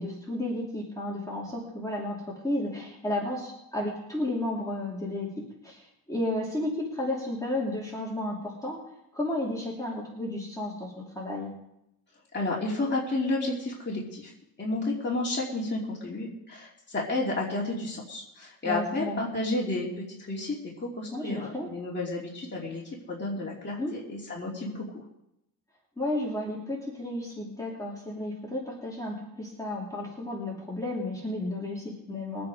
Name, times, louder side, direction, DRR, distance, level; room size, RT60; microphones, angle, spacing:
voice 1, 0.0-2.2 2.4-5.8 6.1-8.8 9.1-11.5 18.6-19.2 21.1-21.7 23.8-23.9 26.0-32.5, left 1 dB, 10° left, -5 dB, 2.8 m, -32 dB
voice 2, 12.3-14.3 14.6-24.8, left 2 dB, 30° left, -4 dB, 2.7 m, -31 dB
22.0 x 8.6 x 5.0 m, 0.83 s
wide cardioid pair, 165°, 36 cm